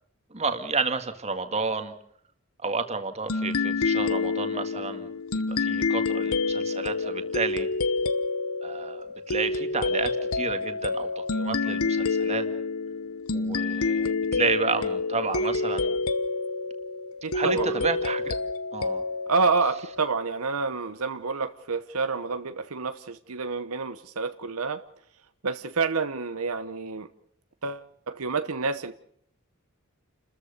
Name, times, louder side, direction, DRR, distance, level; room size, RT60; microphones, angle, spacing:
voice 1, 0.3-1.9 2.6-7.7 8.6-12.5 13.3-15.9 17.3-18.3 18.7-19.0, right 4 dB, 30° right, 8 dB, 1.9 m, -31 dB
sound 1, 3.3-20.5, left 3 dB, 70° left, 1.0 m, -28 dB
voice 2, 17.2-17.7 19.3-24.8 25.4-27.1 27.6-28.9, right 4 dB, 70° right, 10 dB, 1.0 m, -28 dB
29.5 x 14.0 x 6.7 m, 0.66 s
head